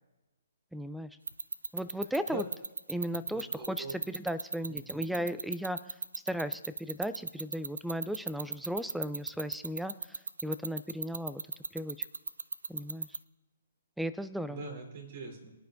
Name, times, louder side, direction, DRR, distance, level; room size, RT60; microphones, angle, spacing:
voice 1, 0.7-1.1 1.7-2.4 2.9-6.0 6.2-9.9 10.4-11.4 11.7-12.0 12.7-13.2 14.0-14.7, equal, ahead, 14 dB, 0.3 m, -36 dB
sound 1, 1.3-13.2, right 4 dB, 90° right, 0.5 m, -35 dB
voice 2, 3.3-3.9 4.7-5.1 14.5-15.5, right 4 dB, 50° right, 2 dB, 3.6 m, -42 dB
24.0 x 9.4 x 2.6 m, 1.1 s
hypercardioid pair, 145°, 0 cm